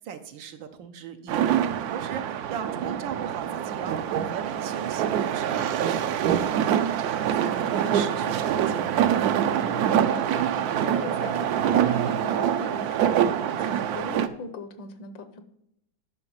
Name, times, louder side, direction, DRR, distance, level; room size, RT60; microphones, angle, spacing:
voice 1, 0.0-9.1, right 7 dB, 85° right, 6 dB, 1.6 m, -39 dB
sound 1, 1.3-14.3, right 9 dB, 70° right, 1.0 m, -25 dB
voice 2, 9.6-15.4, left 3 dB, 80° left, 10 dB, 1.7 m, -40 dB
10.5 x 5.8 x 5.6 m, 0.77 s
omnidirectional pair, 2.0 m